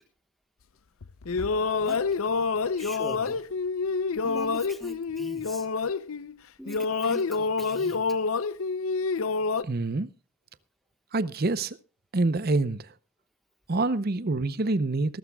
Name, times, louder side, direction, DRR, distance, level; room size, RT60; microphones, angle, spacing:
sound 1, 1.0-6.4 6.7-9.6, left 4 dB, 75° left, 0.6 m, -28 dB
voice 1, 2.8-3.4 4.2-5.7 6.6-8.0, equal, ahead, 1.3 m, -42 dB
voice 2, 9.6-10.1 11.1-11.8 12.1-12.8 13.7-15.2, right 2 dB, 45° right, 0.7 m, -26 dB
23.0 x 13.0 x 2.3 m
head